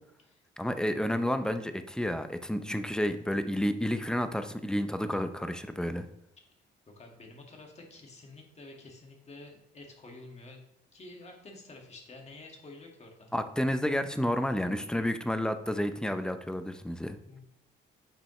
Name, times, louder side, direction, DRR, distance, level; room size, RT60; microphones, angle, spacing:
voice 1, 0.6-6.1 13.3-17.2, equal, 5° left, 9 dB, 0.6 m, -30 dB
voice 2, 7.0-10.6 10.9-13.3 17.3-17.4, left 2 dB, 35° left, 1 dB, 1.9 m, -49 dB
8.8 x 5.3 x 3.2 m, 0.77 s
cardioid pair, 90°, 20 cm